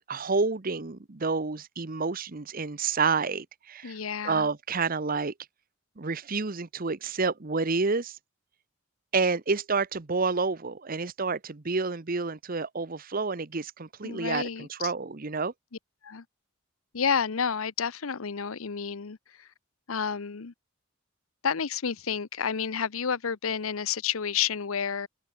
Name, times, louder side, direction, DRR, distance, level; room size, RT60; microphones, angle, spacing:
voice 1, 0.1-4.0 4.2-5.3 6.0-8.2 9.1-15.5, right 4 dB, 45° right, 0.9 m, -29 dB
voice 2, 3.8-4.5 14.0-14.7 16.0-16.2 16.9-19.5 19.9-20.5 21.4-25.1, left 7 dB, 85° left, 0.8 m, -30 dB
head